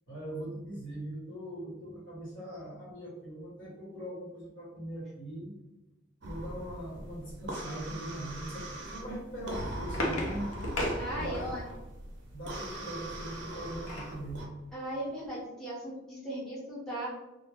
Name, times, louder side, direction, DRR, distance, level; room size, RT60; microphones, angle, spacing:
voice 1, 0.1-5.5 6.2-10.6 11.1-11.6 12.3-14.5, right 1 dB, 65° left, -6 dB, 1.1 m, -41 dB
sound 1, 6.2-14.5, right 1 dB, 55° right, 0.5 m, -41 dB
sound 2, 9.3-11.8 13.3-14.2 14.7-14.8 15.1-15.3, left 1 dB, 80° left, 0.6 m, -35 dB
voice 2, 11.0-11.7 14.7-17.1, right 1 dB, ahead, -9 dB, 0.7 m, -37 dB
2.1 x 2.0 x 3.3 m, 0.98 s
head